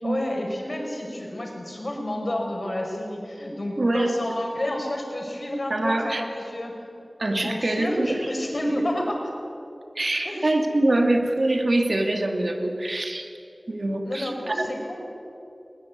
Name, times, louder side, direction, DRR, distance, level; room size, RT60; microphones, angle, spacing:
voice 1, 0.0-6.8 7.4-9.2 10.2-10.5 14.1-15.0, left 1 dB, 50° left, 1 dB, 5.6 m, -30 dB
voice 2, 3.8-4.1 5.7-6.2 7.2-8.3 8.8-8.9 10.0-13.3 13.7-14.7, right 1 dB, 60° right, 3 dB, 2.5 m, -24 dB
20.5 x 20.5 x 9.5 m, 2.8 s
wide cardioid pair, 60°, 0 cm